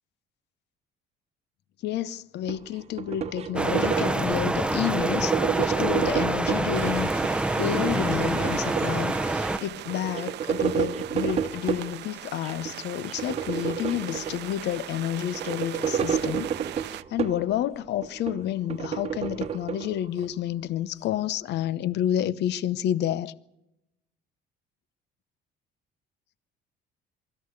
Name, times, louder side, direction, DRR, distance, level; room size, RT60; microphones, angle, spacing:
voice 1, 1.8-16.5 16.9-23.3, left 11 dB, 65° left, 0.8 m, -30 dB
sound 1, 2.5-4.4 4.8-6.7 7.1-9.1 9.4-9.5 9.7-11.9 12.4-12.7 13.1-14.6 15.1-17.6 18.0-20.3, right 8 dB, 35° right, 1.2 m, -30 dB
sound 2, 3.6-9.6, right 2 dB, 5° right, 0.7 m, -26 dB
sound 3, 6.7-17.0, right 15 dB, 65° right, 0.7 m, -40 dB
24.0 x 14.0 x 8.3 m
cardioid pair, 145°, 19 cm